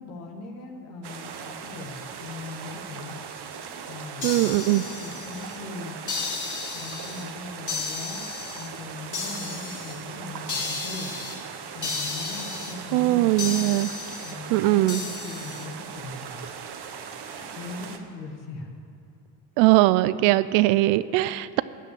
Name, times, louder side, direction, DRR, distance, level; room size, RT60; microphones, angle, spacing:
voice 1, 0.0-3.2 3.9-6.0 6.7-11.1 11.7-13.6 14.2-16.6 17.3-18.7, left 3 dB, 85° left, 2 dB, 1.6 m, -40 dB
sound 1, 1.0-18.0, right 7 dB, 55° right, 1.2 m, -39 dB
sound 2, 4.2-5.6 6.1-7.2 7.7-8.7 9.1-9.9 10.5-11.4 11.8-12.7 13.4-14.3 14.9-15.6, left 4 dB, 40° left, 3.1 m, -33 dB
voice 2, 4.2-4.8 12.9-13.9 14.5-15.0 19.6-21.6, right 18 dB, 80° right, 16 dB, 0.5 m, -20 dB
12.5 x 6.7 x 9.3 m, 2.7 s
hypercardioid pair, 50°, 46 cm